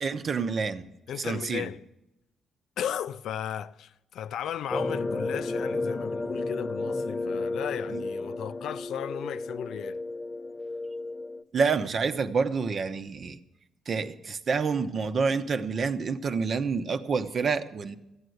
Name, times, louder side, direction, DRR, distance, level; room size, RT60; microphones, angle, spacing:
voice 1, 0.0-0.8 1.2-1.7 7.9-8.0 11.5-13.4 13.9-18.0, right 5 dB, 50° right, 0.9 m, -28 dB
voice 2, 1.1-1.8 2.8-10.0, left 9 dB, 75° left, 0.4 m, -35 dB
sound 1, 4.7-11.4, left 2 dB, 25° left, 0.6 m, -32 dB
14.0 x 8.9 x 7.9 m
cardioid pair, 90°, 0 cm